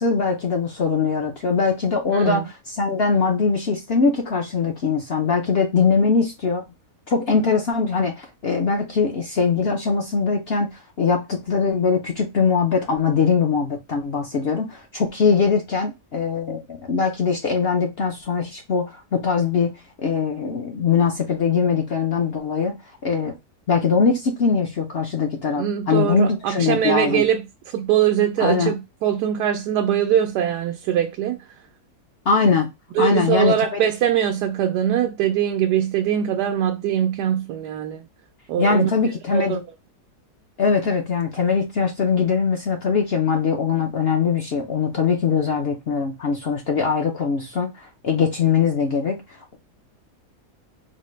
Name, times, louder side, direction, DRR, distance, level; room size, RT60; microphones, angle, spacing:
voice 1, 0.0-2.4 2.8-6.6 7.1-22.8 23.0-23.3 23.7-27.2 28.4-28.7 32.3-32.7 33.0-33.8 38.6-39.6 40.6-49.2, left 5 dB, 60° left, 0.7 m, -21 dB
voice 2, 2.1-2.4 25.6-31.4 32.9-38.0 38.5-38.9 39.3-39.6, right 10 dB, 85° right, 1.2 m, -22 dB
4.1 x 2.2 x 3.1 m
omnidirectional pair, 1.7 m